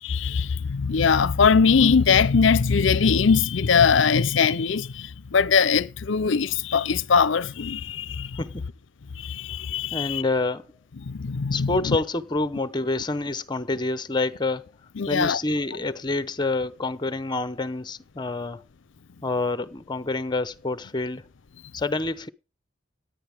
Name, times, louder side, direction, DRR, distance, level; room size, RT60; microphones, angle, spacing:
voice 1, 0.0-8.4 9.2-10.2 11.0-12.0 15.0-15.4, left 5 dB, 65° left, 0.6 m, -21 dB
voice 2, 8.4-8.7 9.9-10.6 11.5-14.7 15.1-18.6 19.2-21.2 21.7-22.3, left 2 dB, 20° left, 0.7 m, -27 dB
17.5 x 10.5 x 3.5 m
head